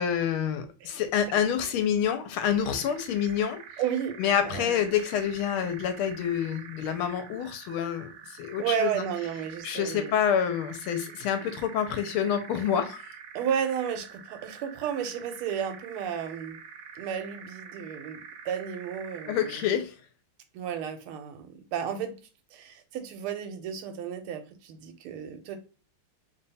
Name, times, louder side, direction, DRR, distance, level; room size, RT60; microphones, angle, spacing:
voice 1, 0.0-3.6 4.2-9.0 9.6-13.1 19.3-19.9, left 8 dB, 80° left, 1.5 m, -27 dB
sound 1, 2.4-19.8, right 7 dB, 70° right, 1.1 m, -46 dB
voice 2, 3.8-4.2 4.4-4.8 8.6-10.1 13.3-16.6 16.9-19.6 20.5-22.2 22.5-25.6, right 8 dB, 90° right, 1.6 m, -33 dB
3.5 x 2.2 x 4.0 m
omnidirectional pair, 2.4 m